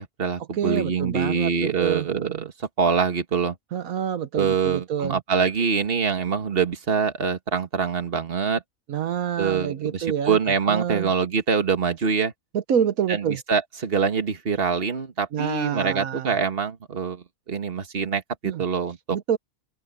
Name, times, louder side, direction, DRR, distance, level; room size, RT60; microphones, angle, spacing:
voice 1, 0.0-3.6 4.3-8.6 9.4-12.3 13.1-19.2, right 6 dB, 45° right, 1.7 m, -25 dB
voice 2, 0.5-2.1 3.7-5.2 8.9-10.4 10.7-11.1 12.5-13.4 15.3-16.4 18.4-18.6 19.1-19.4, right 8 dB, 80° right, 1.4 m, -27 dB
open air
omnidirectional pair, 1.4 m